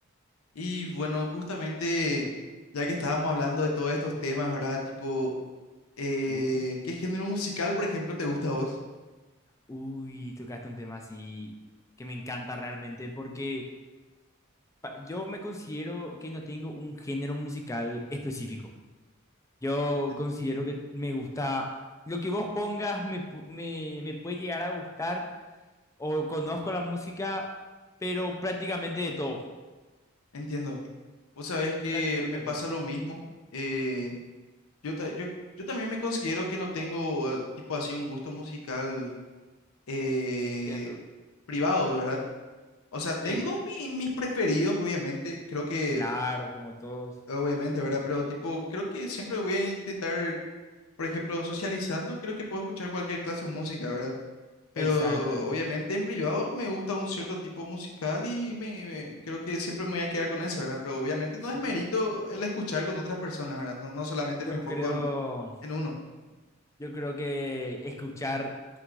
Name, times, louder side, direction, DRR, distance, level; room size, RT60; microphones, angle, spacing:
voice 1, 0.6-2.3 2.7-5.3 6.0-8.7 30.3-30.8 31.4-33.2 33.5-34.1 34.8-35.3 35.7-37.4 37.7-39.1 39.9-41.0 41.5-42.2 42.9-46.0 47.3-50.3 51.0-54.1 54.7-65.1 65.6-65.9, left 2 dB, 90° left, 0 dB, 0.7 m, -31 dB
voice 2, 6.3-6.6 9.7-11.5 12.0-13.7 14.8-18.6 19.6-21.7 22.1-25.3 26.0-27.5 28.0-29.4 31.9-32.6 40.7-41.0 43.2-43.4 45.9-47.2 54.8-55.5 61.5-61.8 64.4-65.5 66.8-68.8, left 1 dB, 15° left, 3 dB, 0.4 m, -34 dB
5.9 x 3.6 x 2.5 m, 1.2 s
head